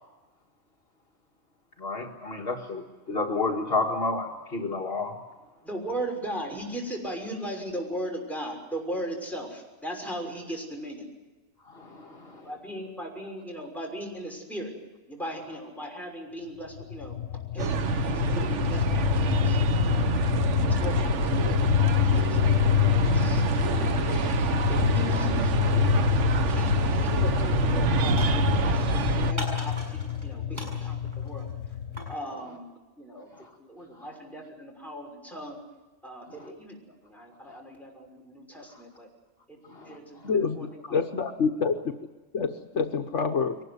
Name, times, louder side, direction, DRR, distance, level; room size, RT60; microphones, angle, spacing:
voice 1, 1.8-5.2 11.7-12.5 20.0-20.2 23.2-23.4 39.7-40.0, left 3 dB, 50° left, 1 dB, 1.9 m, -31 dB
voice 2, 5.6-11.1 12.4-14.7 15.1-17.2 17.5-17.7 18.0-20.0 20.6-22.4 22.9-26.1 26.4-31.5 32.1-33.3 33.6-35.6 36.0-36.8 37.0-39.1 39.5-39.6 39.8-41.0, right 1 dB, ahead, 0 dB, 6.1 m, -38 dB
sound 1, 16.8-32.1, left 11 dB, 90° left, 1.3 m, -26 dB
sound 2, 17.6-29.3, right 7 dB, 70° right, 1.2 m, -27 dB
sound 3, 27.0-27.3 27.6-28.9 29.4-30.3 30.5-32.2, equal, 35° right, 6.8 m, -40 dB
voice 3, 40.2-41.7 42.3-43.6, left 5 dB, 70° left, 6 dB, 1.4 m, -27 dB
23.0 x 19.5 x 8.1 m, 1.2 s
omnidirectional pair, 1.3 m